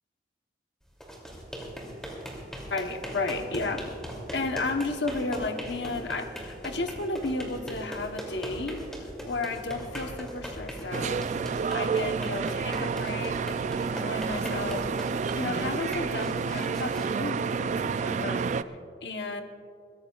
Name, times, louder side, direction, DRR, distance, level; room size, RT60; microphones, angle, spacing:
sound 1, 0.9-17.9, equal, 5° left, 2.7 m, -40 dB
voice 1, 2.7-3.9 4.3-11.3 11.7-13.5 13.8-14.9 15.3-19.4, left 3 dB, 70° left, 5 dB, 1.0 m, -33 dB
sound 2, 10.9-18.6, right 5 dB, 40° right, 0.3 m, -29 dB
22.5 x 17.0 x 2.4 m, 2.4 s
head